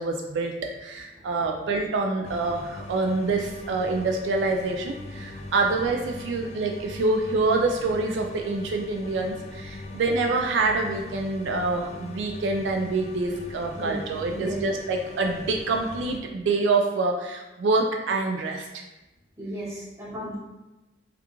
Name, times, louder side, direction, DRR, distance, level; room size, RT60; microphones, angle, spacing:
voice 1, 0.0-18.8, right 3 dB, 75° right, 2 dB, 0.3 m, -26 dB
sound 1, 2.2-16.2, left 2 dB, 40° left, 0.3 m, -41 dB
voice 2, 14.3-14.6 19.4-20.4, right 1 dB, 20° right, -7 dB, 1.0 m, -35 dB
3.5 x 2.3 x 2.9 m, 1.1 s
head